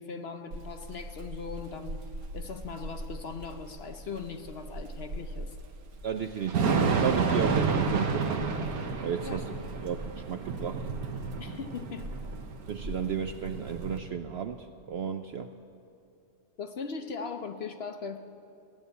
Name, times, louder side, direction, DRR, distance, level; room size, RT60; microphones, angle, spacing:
voice 1, 0.0-2.0 2.3-5.6 9.2-9.4 11.4-12.1 16.6-18.2, left 5 dB, 55° left, 7 dB, 0.8 m, -39 dB
Thunder / Rain, 0.5-14.0, right 4 dB, 85° right, 1.5 m, -31 dB
voice 2, 6.0-8.4 9.0-9.5 9.8-10.9 12.7-15.5, right 7 dB, 65° right, 8 dB, 0.6 m, -34 dB
16.0 x 11.0 x 8.1 m, 2.6 s
omnidirectional pair, 1.5 m